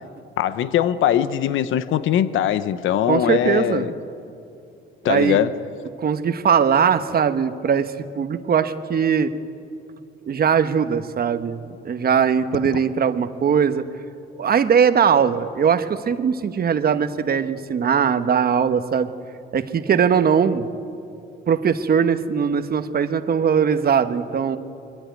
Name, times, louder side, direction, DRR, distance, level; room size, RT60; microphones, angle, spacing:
voice 1, 0.4-3.9 5.0-5.5, left 10 dB, 80° left, 14 dB, 0.9 m, -21 dB
voice 2, 3.1-3.9 5.0-5.4 6.0-9.3 10.3-13.9 14.4-19.1 19.5-20.7 21.5-24.6, right 7 dB, 50° right, 10 dB, 1.1 m, -20 dB
23.5 x 15.5 x 9.3 m, 2.6 s
cardioid pair, 90°, 20 cm